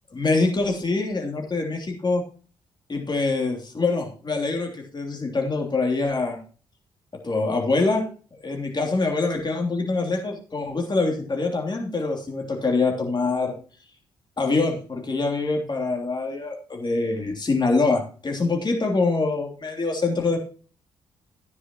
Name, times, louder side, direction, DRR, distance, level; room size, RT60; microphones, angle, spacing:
voice 1, 0.1-2.2 2.9-6.4 7.2-8.0 8.4-13.5 14.4-20.4, left 3 dB, 35° left, 2 dB, 3.1 m, -24 dB
13.5 x 9.9 x 3.0 m, 0.39 s
hypercardioid pair, 40°, 14 cm